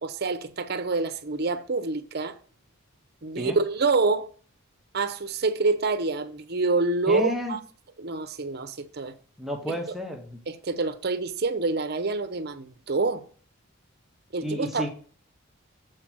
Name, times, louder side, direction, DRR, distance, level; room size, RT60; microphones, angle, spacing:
voice 1, 0.0-2.3 3.2-4.3 4.9-7.6 8.0-9.1 9.7-9.8 10.5-13.2 14.3-14.9, right 3 dB, 50° right, 0.7 m, -27 dB
voice 2, 7.1-7.6 9.4-10.4 14.4-14.9, equal, ahead, 1.0 m, -31 dB
7.7 x 4.6 x 6.1 m
head